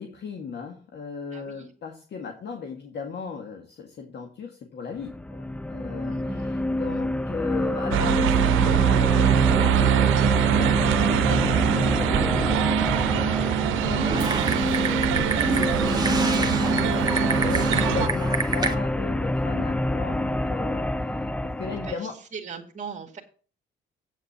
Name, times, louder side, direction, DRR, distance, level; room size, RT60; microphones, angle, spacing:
voice 1, 0.0-9.9 10.4-22.2, left 5 dB, 60° left, 3 dB, 1.9 m, -37 dB
voice 2, 1.3-1.7 6.0-6.6 21.8-23.2, right 6 dB, 40° right, 0 dB, 2.1 m, -40 dB
sound 1, 4.9-21.9, left 1 dB, 5° left, 0.4 m, -27 dB
sound 2, 7.9-18.1, right 12 dB, 85° right, 0.8 m, -23 dB
Typing, 14.0-18.7, right 3 dB, 20° right, 1.7 m, -29 dB
8.7 x 7.3 x 5.8 m, 0.40 s
cardioid pair, 90°, 20 cm